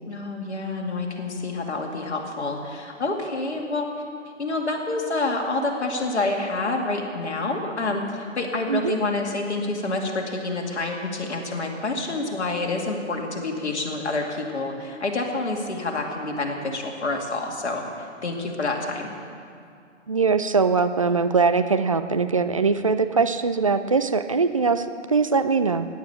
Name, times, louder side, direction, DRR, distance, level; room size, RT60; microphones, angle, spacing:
voice 1, 0.1-3.9 4.4-19.2, left 2 dB, 65° left, 1 dB, 2.4 m, -28 dB
voice 2, 20.1-25.9, right 4 dB, 30° right, 9 dB, 0.4 m, -22 dB
16.0 x 9.9 x 7.1 m, 2.4 s
figure-of-eight pair, 130°, 37 cm